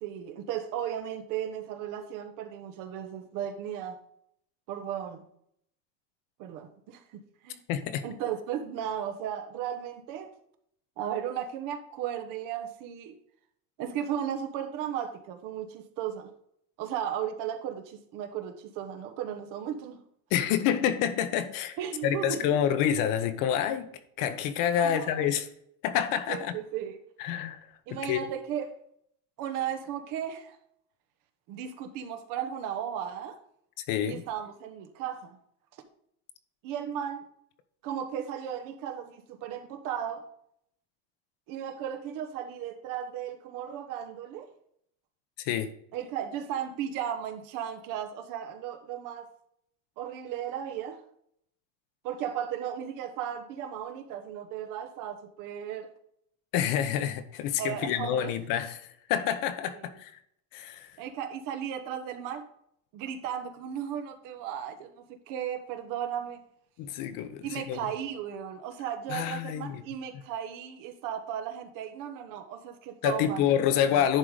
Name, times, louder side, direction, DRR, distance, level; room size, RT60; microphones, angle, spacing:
voice 1, 0.0-4.0 4.7-5.3 6.4-7.6 8.0-10.3 11.0-13.2 13.8-16.3 16.8-20.0 21.8-22.4 24.8-25.3 26.3-26.9 27.9-28.7 29.4-30.6 31.5-33.4 34.1-35.4 36.6-37.3 37.8-40.3 41.5-44.5 45.9-49.3 50.0-51.0 52.0-55.9 57.6-58.3 61.0-62.5 62.9-66.4 67.4-74.1, right 9 dB, 60° right, 1.2 m, -35 dB
voice 2, 7.7-8.0 20.3-23.9 24.2-25.5 25.8-26.5 27.2-28.2 33.8-34.2 45.4-45.7 56.5-60.2 60.5-61.0 66.8-67.9 69.1-69.8 73.0-74.2, left 9 dB, 60° left, 1.0 m, -28 dB
10.5 x 3.8 x 4.9 m
cardioid pair, 135°, 36 cm